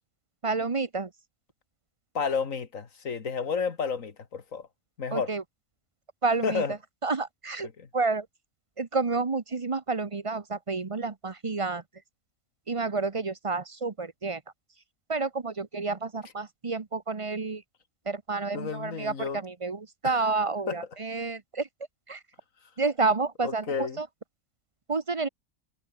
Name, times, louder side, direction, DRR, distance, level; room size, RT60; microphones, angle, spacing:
voice 1, 0.4-1.1 5.1-5.4 6.2-6.6 7.0-7.7 7.9-8.3 8.8-11.8 12.7-14.4 15.1-17.6 18.1-21.7 22.1-22.2 22.8-24.1 24.9-25.3, right 4 dB, 25° right, 0.7 m, -29 dB
voice 2, 2.1-4.7 5.0-5.3 6.4-6.8 7.6-7.9 18.5-19.4 20.0-20.2 20.7-20.8 23.4-24.0, left 5 dB, 60° left, 2.3 m, -31 dB
omnidirectional pair, 1.6 m